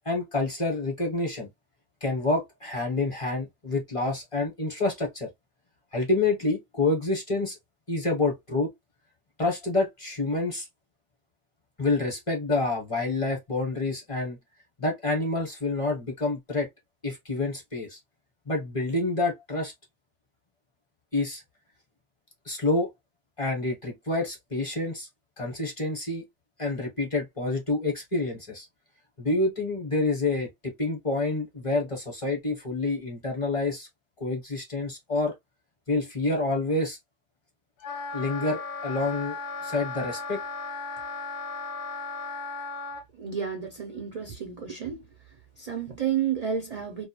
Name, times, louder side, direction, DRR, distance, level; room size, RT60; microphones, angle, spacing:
voice 1, 0.0-1.5 2.0-5.3 5.9-7.6 7.9-8.7 9.4-10.7 11.8-14.4 14.8-16.7 17.0-18.0 18.5-19.7 21.1-21.4 22.5-22.9 23.4-25.1 25.4-26.2 26.6-28.7 29.2-33.9 34.2-35.3 35.9-37.0 38.1-39.4 39.6-40.4, left 2 dB, 30° left, 0.9 m, -28 dB
Wind instrument woodwind instrument, 37.8-43.0, left 3 dB, 75° left, 0.8 m, -36 dB
voice 2, 43.2-45.0 45.6-47.1, right 8 dB, 45° right, 0.5 m, -31 dB
2.3 x 2.3 x 2.8 m
omnidirectional pair, 1.2 m